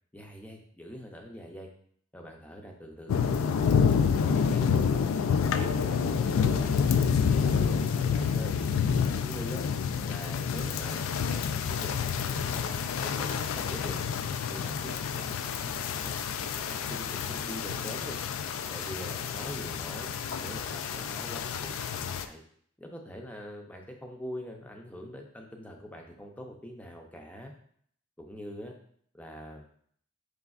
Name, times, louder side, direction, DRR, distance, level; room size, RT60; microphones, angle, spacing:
voice 1, 0.1-1.7 2.1-3.7 4.1-7.1 7.4-8.5 9.1-9.6 10.0-14.1 14.5-16.2 16.6-18.2 18.7-20.1 20.4-22.4 22.8-27.5 28.2-28.7 29.1-29.6, equal, 5° left, 1 dB, 0.5 m, -44 dB
sound 1, 3.1-22.3, left 6 dB, 85° left, 0.3 m, -28 dB
5.1 x 3.3 x 2.3 m, 0.63 s
head